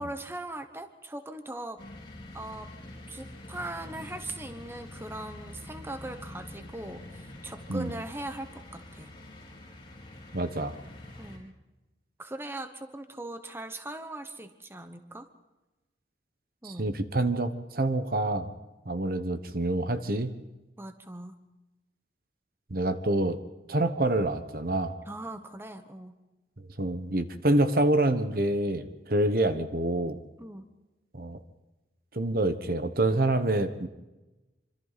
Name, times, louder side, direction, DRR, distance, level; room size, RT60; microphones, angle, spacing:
voice 1, 0.0-1.8 2.3-2.7 3.1-9.1 11.2-11.5 12.2-15.3 16.6-16.9 20.8-21.3 25.1-26.2 30.4-30.7, right 1 dB, 15° right, 8 dB, 1.1 m, -40 dB
sound 1, 1.8-11.4, left 1 dB, 30° left, 5.0 m, -46 dB
voice 2, 10.3-10.7 16.6-18.5 18.9-20.3 22.7-23.4 23.7-24.9 26.8-30.2 31.1-31.4 32.1-33.9, right 1 dB, 55° right, 10 dB, 1.1 m, -27 dB
26.0 x 25.5 x 4.1 m, 1.1 s
head